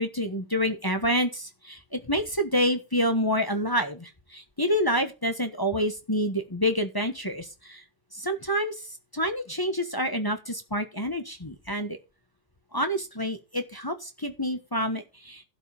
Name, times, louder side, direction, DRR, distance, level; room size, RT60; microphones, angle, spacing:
voice 1, 0.0-7.8 8.1-12.0 12.7-15.4, equal, 15° left, 6 dB, 1.0 m, -28 dB
12.0 x 5.4 x 7.0 m, 0.29 s
omnidirectional pair, 1.8 m